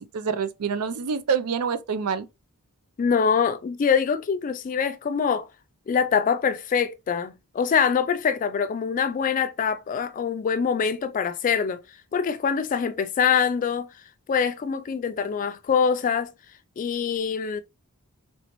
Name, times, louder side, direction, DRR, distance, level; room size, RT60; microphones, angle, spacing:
voice 1, 0.1-2.3, right 6 dB, 85° right, 0.5 m, -26 dB
voice 2, 3.0-5.5 5.9-11.8 12.1-13.9 14.3-16.3 16.8-17.6, left 6 dB, 35° left, 0.3 m, -24 dB
4.0 x 3.3 x 2.9 m
head